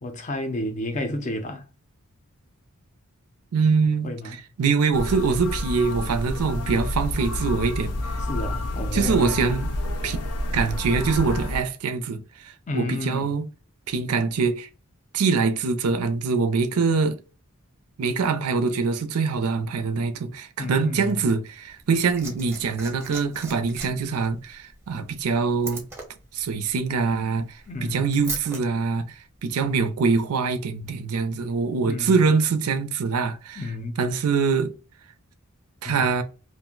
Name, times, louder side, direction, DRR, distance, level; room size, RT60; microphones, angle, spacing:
voice 1, 0.0-1.6 4.0-4.4 8.3-9.4 12.7-13.4 20.6-21.2 27.7-28.1 29.6-30.0 31.8-32.2 33.6-34.1 35.8-36.1, left 2 dB, 30° left, 0.5 m, -31 dB
voice 2, 3.5-4.1 4.6-8.0 8.9-9.7 10.0-10.2 10.5-13.4 13.9-14.7 15.1-17.2 18.0-25.8 26.3-27.6 27.9-29.1 29.4-33.6 34.0-34.7 35.8-36.2, right 4 dB, 80° right, 0.5 m, -24 dB
sound 1, 4.9-11.6, left 1 dB, 85° left, 0.6 m, -29 dB
Liquid, 21.7-28.6 29.7-29.8, right 3 dB, 10° right, 0.6 m, -39 dB
2.5 x 2.1 x 3.8 m
head